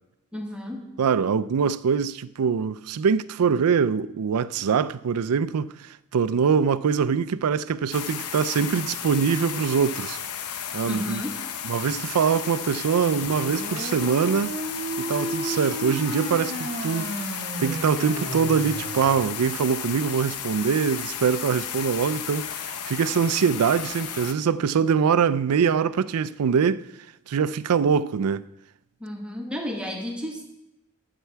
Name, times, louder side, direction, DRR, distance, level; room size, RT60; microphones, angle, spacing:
voice 1, 0.3-0.9 10.8-11.4 29.0-30.4, equal, 5° right, 1.3 m, -32 dB
voice 2, 1.0-10.2 10.7-11.2 11.6-14.6 15.0-17.1 17.6-26.9 27.3-28.5, right 6 dB, 80° right, 0.4 m, -23 dB
sound 1, 7.9-24.3, left 8 dB, 85° left, 0.7 m, -34 dB
sound 2, 13.1-19.1, right 2 dB, 50° right, 0.8 m, -33 dB
11.5 x 8.4 x 4.6 m
head